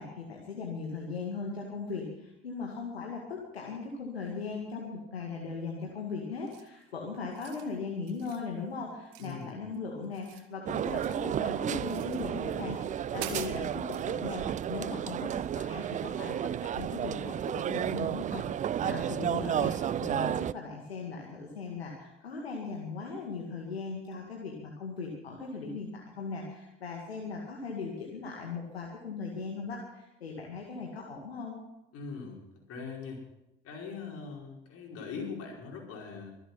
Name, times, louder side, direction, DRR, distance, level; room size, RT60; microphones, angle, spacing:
voice 1, 0.0-18.5 18.8-31.6, left 4 dB, 80° left, 0 dB, 2.1 m, -38 dB
sound 1, 6.5-6.8 7.2-7.7 8.1-8.5 9.1-9.8 10.0-11.3 11.8-12.2 12.7-12.8 13.1-14.1, right 11 dB, 60° right, 1.6 m, -44 dB
voice 2, 9.2-9.6 18.8-19.3 31.9-32.4 32.7-33.2 33.6-36.3, left 5 dB, 50° left, 0 dB, 5.0 m, -41 dB
sound 2, 10.7-20.5, right 10 dB, 25° right, 0.4 m, -32 dB
24.0 x 8.1 x 5.9 m, 0.91 s
figure-of-eight pair, 60°, 31 cm